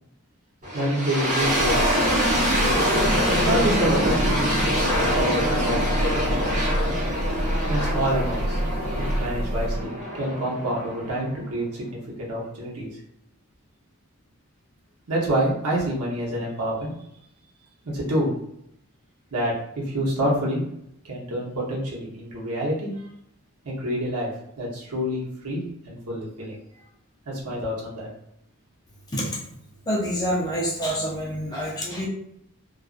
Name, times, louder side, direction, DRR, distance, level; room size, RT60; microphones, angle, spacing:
sound 1, 0.6-11.6, equal, 35° right, 1.0 m, -25 dB
voice 1, 0.7-1.8 3.3-4.5 4.9-6.5 7.7-8.6 8.9-13.0 15.1-16.9 17.8-18.3 19.3-20.6 21.0-23.1 23.6-24.3 24.6-26.6 27.3-28.1, equal, 85° right, -4 dB, 0.9 m, -27 dB
Breathing / Bird, 1.4-9.9, right 1 dB, 70° right, 0.3 m, -28 dB
voice 2, 29.9-32.1, equal, 15° left, -4 dB, 0.5 m, -27 dB
2.4 x 2.3 x 2.4 m, 0.76 s
head